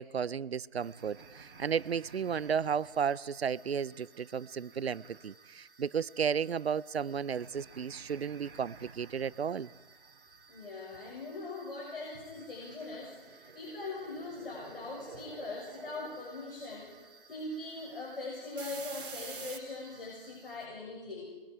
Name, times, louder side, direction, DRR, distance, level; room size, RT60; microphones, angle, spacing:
voice 1, 0.0-9.7, right 7 dB, 90° right, 0.7 m, -33 dB
sound 1, 0.8-20.6, right 5 dB, 60° right, 2.9 m, -52 dB
voice 2, 10.5-21.3, left 3 dB, 65° left, 7.4 m, -41 dB
26.5 x 23.0 x 4.8 m
hypercardioid pair, 165°, 31 cm